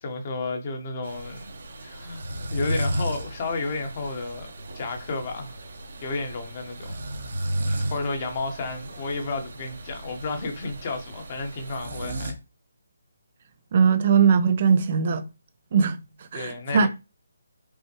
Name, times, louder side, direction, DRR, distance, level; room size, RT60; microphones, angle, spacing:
voice 1, 0.0-1.5 1.8-2.2 2.5-4.5 4.7-5.5 6.0-6.9 7.6-12.3 16.3-16.9, left 3 dB, 35° left, 1.1 m, -32 dB
sound 1, 1.0-12.3, right 1 dB, 65° right, 1.2 m, -34 dB
voice 2, 13.7-15.2 15.7-16.0 16.3-16.9, right 6 dB, 40° right, 0.5 m, -20 dB
5.4 x 2.2 x 3.0 m
hypercardioid pair, 160°, 0 cm